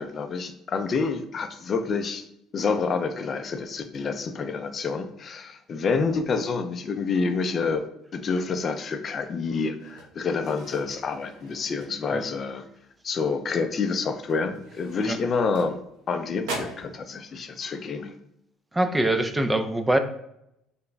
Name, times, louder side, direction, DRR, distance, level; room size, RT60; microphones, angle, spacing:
voice 1, 0.0-2.2 2.5-7.8 8.1-12.6 13.0-15.8 16.1-18.1, left 4 dB, 45° left, 8 dB, 0.4 m, -28 dB
sound 1, 9.8-12.4 12.8-13.1 13.4-13.6 14.2-16.1 16.4-16.9, right 2 dB, 85° right, 0.8 m, -40 dB
voice 2, 18.7-20.0, right 1 dB, 10° right, 8 dB, 0.4 m, -23 dB
3.4 x 2.2 x 3.9 m, 0.79 s
supercardioid pair, 85°, 0 cm